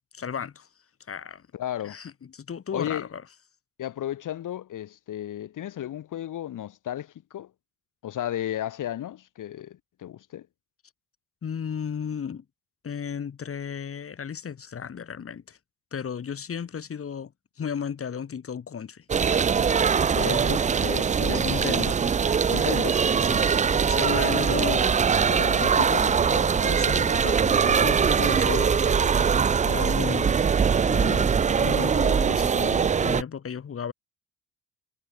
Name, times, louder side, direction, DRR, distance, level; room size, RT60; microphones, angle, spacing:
voice 1, 0.1-0.7 1.1-1.4 1.8-3.2 11.4-12.4 12.8-15.6 15.9-17.3 17.6-19.0 21.2-22.1 23.2-25.0 25.3-30.4 30.8-33.9, left 7 dB, 40° left, 4.2 m, -34 dB
voice 2, 1.5-2.0 2.7-3.1 3.8-7.5 8.0-10.5 20.1-22.0 22.5-23.5, left 11 dB, 60° left, 7.4 m, -34 dB
sound 1, 19.1-33.2, right 6 dB, 20° right, 0.5 m, -22 dB
cardioid pair, 90°, 34 cm